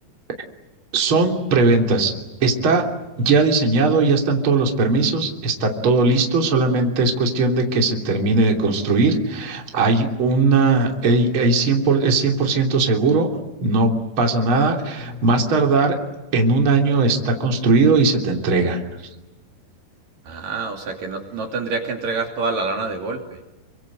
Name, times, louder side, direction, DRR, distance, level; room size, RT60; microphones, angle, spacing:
voice 1, 0.9-2.1 2.4-2.8 3.2-13.3 13.6-15.9 16.3-18.8, right 3 dB, 35° right, 2 dB, 3.6 m, -19 dB
voice 2, 20.3-23.4, right 3 dB, 55° right, 2 dB, 4.2 m, -27 dB
29.5 x 24.5 x 8.0 m, 1.0 s
omnidirectional pair, 4.8 m